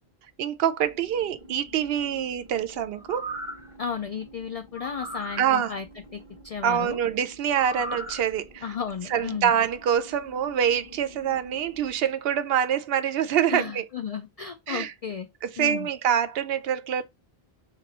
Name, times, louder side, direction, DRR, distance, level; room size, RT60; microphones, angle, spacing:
voice 1, 0.4-3.2 5.4-5.8 6.6-8.6 9.1-13.8 14.7-14.9 15.4-17.0, right 9 dB, 75° right, 0.8 m, -25 dB
sound 1, 0.8-12.5, equal, 30° right, 1.1 m, -50 dB
sound 2, 2.9-3.7 4.7-5.4 7.5-8.2 8.7-8.8, equal, 5° right, 0.5 m, -36 dB
voice 2, 3.8-5.9 6.1-7.0 8.6-9.5 13.5-15.3 15.6-15.9, left 7 dB, 55° left, 0.4 m, -34 dB
3.3 x 3.0 x 4.1 m
omnidirectional pair, 1.0 m